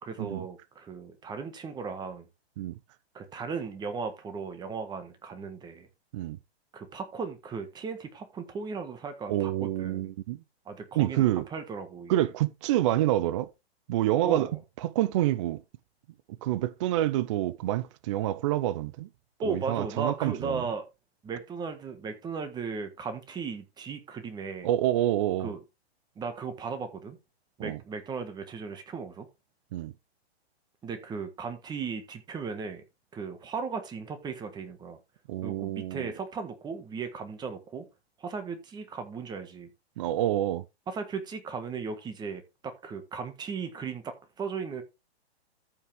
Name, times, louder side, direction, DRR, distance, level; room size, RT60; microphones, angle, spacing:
voice 1, 0.0-2.2 3.1-5.9 6.7-10.1 10.6-12.3 14.2-14.6 19.4-20.8 21.2-24.7 25.4-25.6 26.2-27.2 27.6-29.3 30.8-32.8 33.1-35.0 35.4-37.8 38.2-39.7 40.9-44.8, right 5 dB, 10° right, 1.5 m, -36 dB
voice 2, 9.3-10.4 11.0-11.5 12.1-13.5 13.9-14.5 14.8-15.6 16.4-19.1 19.5-20.6 24.6-25.5 27.6-27.8 29.7-29.9 35.3-36.1 40.0-40.6, right 14 dB, 30° right, 0.5 m, -27 dB
14.0 x 5.8 x 3.5 m
hypercardioid pair, 150°, 33 cm